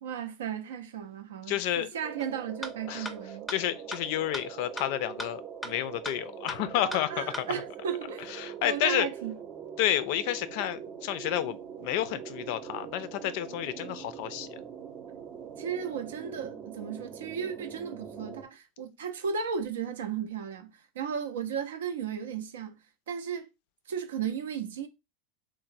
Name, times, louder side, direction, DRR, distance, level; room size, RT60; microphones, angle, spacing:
voice 1, 0.0-3.5 6.8-8.3 8.6-9.4 15.6-22.8 23.1-23.5 23.9-24.9, right 7 dB, 85° right, 0.4 m, -35 dB
voice 2, 1.5-1.9 2.9-3.1 3.5-7.5 8.4-9.1 9.8-14.6, left 12 dB, 65° left, 0.3 m, -30 dB
sound 1, 2.0-18.5, right 7 dB, 40° right, 0.6 m, -43 dB
sound 2, 2.2-2.3 2.6-2.7 3.0-3.1 3.5-3.6 3.9-4.0 4.3-4.4 4.8-4.9 5.2-5.3 5.6-5.7 6.0-6.1 6.5-6.6 6.9-7.0 7.3-7.4, equal, 5° left, 0.5 m, -36 dB
3.0 x 2.0 x 2.5 m
hypercardioid pair, 100°, 0 cm